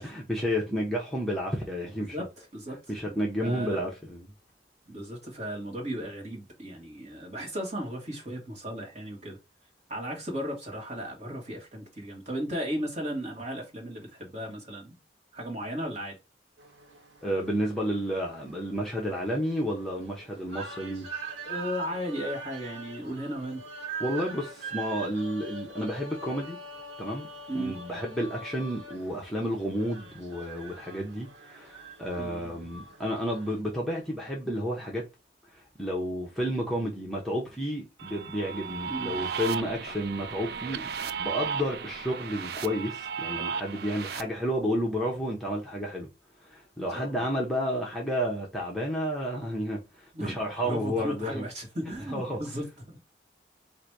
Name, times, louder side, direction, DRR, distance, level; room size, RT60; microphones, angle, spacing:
voice 1, 0.0-2.2 2.9-4.3 17.2-21.1 24.0-26.6 27.0-27.3 27.5-35.0 35.5-46.1 46.4-51.5 51.8-52.4, equal, ahead, 0.7 m, -31 dB
voice 2, 2.1-2.8 3.0-3.8 4.9-9.4 9.9-15.0 15.3-16.2 21.4-23.6 27.5-27.7 32.2-32.7 38.9-39.3 39.9-40.0 44.2-44.3 46.9-47.2 50.1-50.4 50.6-53.0, equal, 40° right, 1.6 m, -36 dB
sound 1, 16.6-33.6, right 3 dB, 90° right, 1.0 m, -43 dB
sound 2, 38.0-44.2, right 6 dB, 60° right, 0.3 m, -35 dB
3.9 x 2.6 x 4.6 m
head